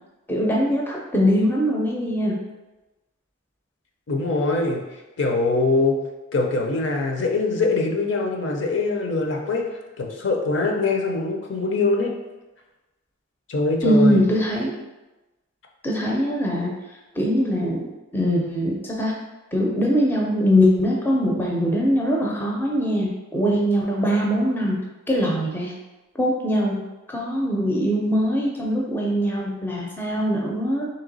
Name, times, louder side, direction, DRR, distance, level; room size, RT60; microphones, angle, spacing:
voice 1, 0.3-2.4 13.8-14.7 15.8-16.7 17.2-17.8 18.1-19.1 19.5-24.8 25.1-25.7 26.2-26.8 27.1-30.9, equal, 10° left, -3 dB, 0.5 m, -22 dB
voice 2, 4.1-6.0 6.3-12.1 13.5-14.2, left 3 dB, 60° left, 1 dB, 0.5 m, -23 dB
3.2 x 2.9 x 4.0 m, 1.1 s
head